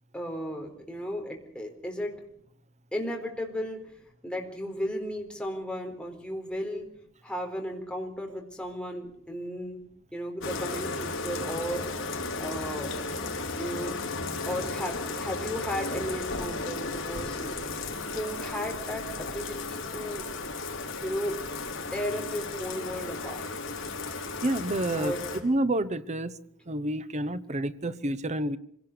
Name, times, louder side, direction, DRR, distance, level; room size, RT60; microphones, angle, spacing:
voice 1, 0.1-2.2 2.9-3.8 4.2-6.9 7.2-9.8 10.1-11.8 12.4-13.0 13.6-14.1 14.4-17.6 18.1-20.3 21.0-21.4 21.9-23.4 24.9-25.2, equal, 5° left, 1 dB, 4.2 m, -35 dB
Bathtub (filling or washing), 10.4-25.4, left 3 dB, 70° left, 4.4 m, -34 dB
voice 2, 24.4-25.1 25.4-26.4 26.7-28.6, right 1 dB, 35° right, 14 dB, 1.0 m, -29 dB
25.5 x 18.0 x 6.9 m, 0.67 s
head